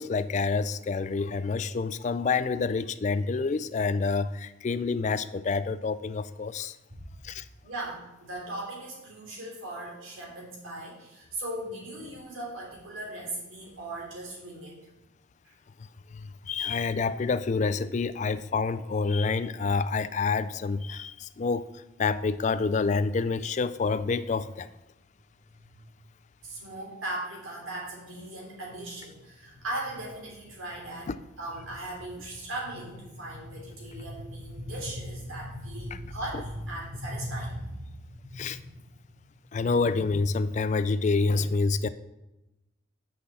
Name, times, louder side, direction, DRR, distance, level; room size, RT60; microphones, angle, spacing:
voice 1, 0.0-6.8 7.2-7.4 15.8-15.9 16.1-24.7 38.3-38.6 39.5-41.9, left 4 dB, 35° left, 14 dB, 0.3 m, -28 dB
voice 2, 6.9-7.2 7.6-14.7 15.4-15.5 25.5-25.9 26.4-31.1 31.4-38.8, right 1 dB, 80° right, -2 dB, 3.1 m, -38 dB
6.1 x 5.9 x 7.1 m, 0.98 s
head